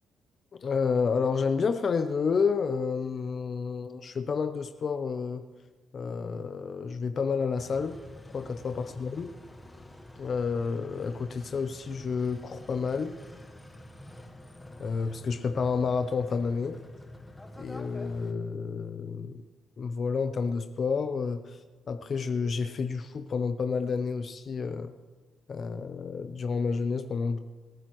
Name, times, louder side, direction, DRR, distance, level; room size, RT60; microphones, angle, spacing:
voice 1, 0.6-5.4 5.9-8.0 8.3-9.3 10.2-13.1 14.8-16.8 17.6-19.4 19.8-21.6 21.9-24.9 25.5-27.4, left 5 dB, 45° left, 9 dB, 0.6 m, -30 dB
sound 1, 7.6-18.3, left 1 dB, 10° left, 1.1 m, -48 dB
27.0 x 9.0 x 3.1 m, 1.3 s
cardioid pair, 90°, 0 cm